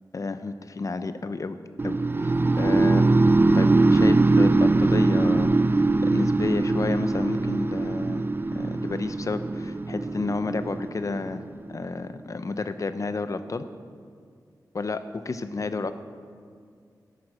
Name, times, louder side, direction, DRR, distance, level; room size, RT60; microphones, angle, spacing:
voice 1, 0.1-1.6 1.8-3.1 3.5-11.4 11.7-13.6 14.7-15.9, left 3 dB, 50° left, 11 dB, 0.7 m, -31 dB
sound 1, 1.8-11.8, right 2 dB, 30° right, 0.4 m, -22 dB
13.5 x 10.5 x 6.4 m, 2.2 s
wide cardioid pair, 110°, 7 cm